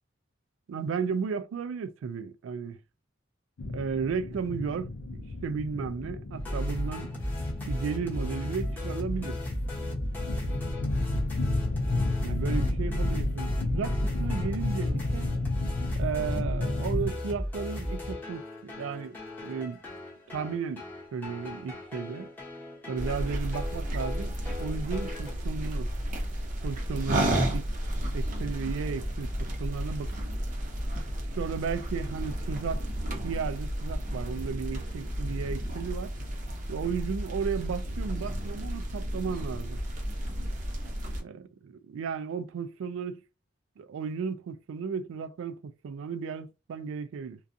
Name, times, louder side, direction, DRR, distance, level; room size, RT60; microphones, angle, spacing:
voice 1, 0.7-2.8 3.7-7.1 7.7-9.4 12.2-15.3 16.0-19.8 20.3-20.8 21.1-22.3 22.9-25.9 26.6-27.7 28.1-30.1 31.3-32.8 33.2-36.1 36.7-39.8 41.2-43.2 43.8-47.4, right 6 dB, 85° right, 0.3 m, -34 dB
sound 1, 3.6-17.1, left 2 dB, 65° left, 0.4 m, -32 dB
sound 2, 6.4-25.3, left 1 dB, 10° left, 0.9 m, -35 dB
sound 3, 23.0-41.2, right 1 dB, 40° right, 0.7 m, -32 dB
2.4 x 2.3 x 2.5 m
head